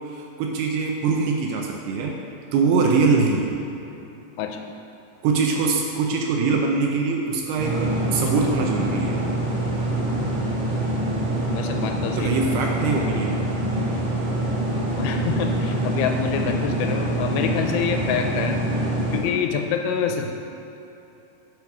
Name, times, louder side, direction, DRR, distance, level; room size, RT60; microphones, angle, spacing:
voice 1, 0.1-2.2 2.5-3.5 5.2-9.2 12.2-13.4 20.2-20.3, right 4 dB, 80° right, 1 dB, 2.5 m, -23 dB
sound 1, 7.6-19.2, right 1 dB, 40° right, 2.7 m, -25 dB
voice 2, 11.5-12.3 15.0-18.6 19.1-20.3, left 7 dB, 85° left, 4 dB, 2.7 m, -26 dB
9.2 x 5.0 x 5.9 m, 2.9 s
omnidirectional pair, 5.1 m